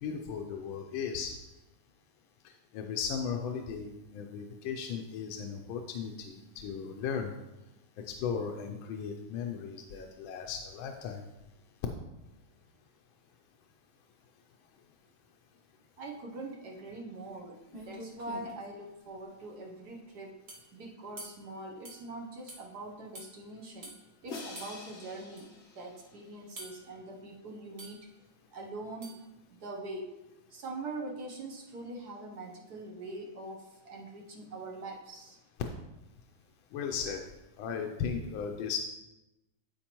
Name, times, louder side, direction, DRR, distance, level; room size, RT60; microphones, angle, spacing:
voice 1, 0.0-1.3 2.7-7.3 8.0-11.2 36.7-37.2 37.6-38.8, left 6 dB, 80° left, 3 dB, 1.4 m, -36 dB
voice 2, 16.0-20.4 20.7-23.9 24.2-28.0 28.5-29.1 29.5-30.1 30.5-35.4, right 2 dB, 60° right, 1 dB, 1.3 m, -43 dB
sound 1, 17.3-17.4 17.7-18.6 20.5-20.7 21.2-21.4 21.8-22.0 22.5-22.6 23.1-23.3 23.8-24.0 24.5-24.7 25.4-25.5 26.6-26.9 27.8-28.0 29.0-29.2, right 1 dB, 35° right, 1.5 m, -46 dB
Crash cymbal, 24.3-26.5, left 3 dB, 45° left, 1.0 m, -46 dB
12.5 x 4.4 x 3.0 m, 0.97 s
omnidirectional pair, 2.2 m